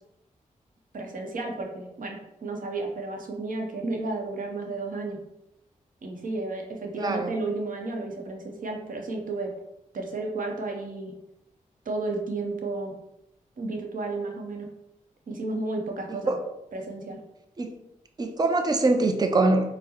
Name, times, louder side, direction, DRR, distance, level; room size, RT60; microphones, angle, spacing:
voice 1, 0.9-5.2 6.0-9.5 9.9-11.1 11.9-12.9 13.6-14.7 15.3-16.4 16.7-17.2, right 2 dB, 70° right, 2 dB, 0.7 m, -32 dB
voice 2, 7.0-7.3 16.3-16.4 17.6-17.7 18.2-19.7, right 2 dB, 30° right, 5 dB, 0.5 m, -23 dB
4.6 x 2.0 x 2.9 m, 0.85 s
cardioid pair, 60°, 14 cm